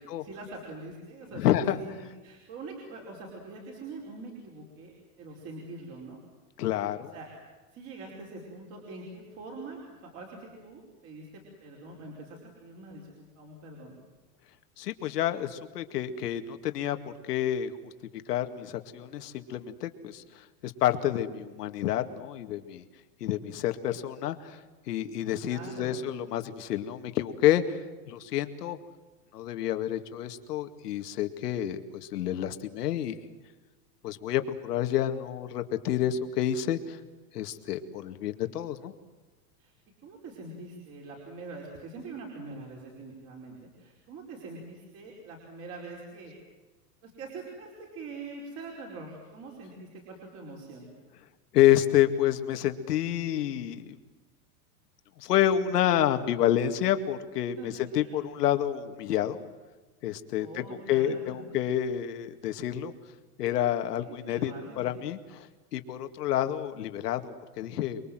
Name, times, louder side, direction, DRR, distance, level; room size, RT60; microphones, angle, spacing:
voice 1, 0.0-6.2 7.1-7.3 7.7-13.9 25.5-26.1 39.6-39.7 40.0-46.3 47.0-50.9 57.6-58.2 60.4-61.6 64.0-65.0, right 3 dB, 30° right, -1 dB, 5.1 m, -44 dB
voice 2, 1.3-1.8 6.6-7.1 14.8-22.8 23.2-24.6 24.9-28.8 29.3-33.1 34.0-37.0 37.3-38.9 51.5-54.0 55.2-59.4 60.0-62.9 63.4-65.5 65.7-68.0, left 11 dB, 90° left, 8 dB, 2.3 m, -29 dB
29.0 x 22.5 x 7.8 m, 1.2 s
supercardioid pair, 165°, 46 cm